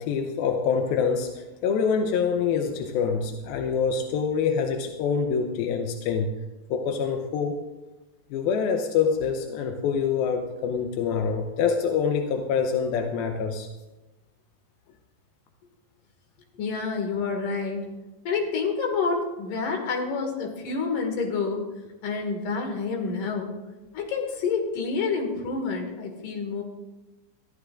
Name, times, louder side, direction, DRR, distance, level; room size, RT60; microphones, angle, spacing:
voice 1, 0.0-6.3 6.7-7.6 8.3-13.7, left 6 dB, 85° left, 4 dB, 2.6 m, -25 dB
voice 2, 16.6-17.8 18.3-21.6 22.0-23.5 23.9-26.6, left 4 dB, 60° left, 2 dB, 3.5 m, -28 dB
21.5 x 14.0 x 2.6 m, 1.1 s
omnidirectional pair, 4.3 m